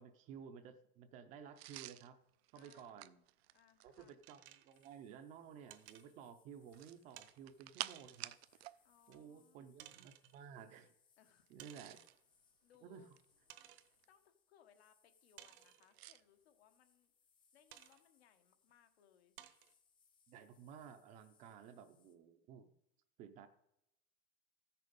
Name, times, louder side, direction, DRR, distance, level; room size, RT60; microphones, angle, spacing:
voice 1, 0.0-2.2 2.5-3.2 3.8-8.3 9.1-10.9 11.5-12.0 12.8-13.0 20.3-22.7 23.2-23.5, right 7 dB, 25° right, 9 dB, 0.5 m, -55 dB
sound 1, 1.6-4.2 6.6-8.8 9.1-9.2 11.5-12.2 12.9-14.1 16.0-16.2, right 15 dB, 85° right, 0.5 m, -51 dB
voice 2, 2.5-3.2 3.5-4.2 8.8-9.7 11.2-12.0 12.6-13.1 14.1-17.1 17.5-19.3, left 9 dB, 80° left, 7 dB, 1.3 m, -70 dB
sound 2, 4.2-5.0 5.7-6.1 7.2-7.3 7.8-8.4 9.1-9.2 9.8-10.4 11.6-12.2 12.7-12.8 13.5-13.9 15.4-16.0 17.7-18.0 18.7-18.8 19.4-19.7, right 13 dB, 65° right, 1.0 m, -58 dB
sound 3, 4.7-22.2, left 6 dB, 15° left, 0.6 m, -77 dB
14.0 x 6.7 x 5.2 m, 0.82 s
supercardioid pair, 165°, 31 cm